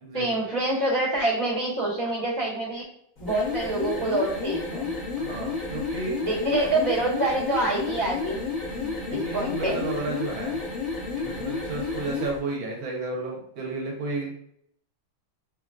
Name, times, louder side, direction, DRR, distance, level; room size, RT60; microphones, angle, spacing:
voice 1, 0.1-2.9 3.2-4.9 6.2-8.4 9.1-9.8, right 1 dB, 25° left, -9 dB, 0.5 m, -26 dB
sound 1, 3.2-12.4, left 4 dB, 50° left, 1.4 m, -31 dB
voice 2, 5.2-6.1 6.5-6.7 8.7-10.6 11.1-14.3, right 3 dB, 80° right, -1 dB, 1.6 m, -33 dB
4.0 x 2.3 x 2.3 m, 0.68 s
omnidirectional pair, 2.2 m